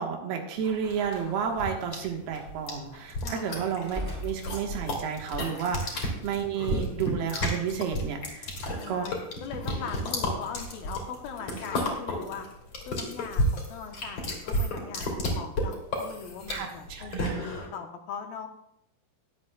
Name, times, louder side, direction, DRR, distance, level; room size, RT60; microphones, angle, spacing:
voice 1, 0.0-8.5 8.9-9.1 11.5-11.6 16.5-17.4, right 7 dB, 80° right, 2 dB, 3.3 m, -31 dB
sound 1, 0.6-17.7, left 1 dB, 45° left, 3.5 m, -32 dB
Slam, 1.0-1.4 2.3-2.5 3.8-5.1, equal, 5° right, 2.2 m, -39 dB
voice 2, 3.2-3.7 8.8-12.5 12.9-18.5, left 6 dB, 75° left, 5 dB, 2.5 m, -40 dB
sound 2, 6.7-7.2, right 2 dB, 45° right, 3.2 m, -29 dB
20.5 x 8.1 x 2.3 m, 0.78 s
omnidirectional pair, 4.5 m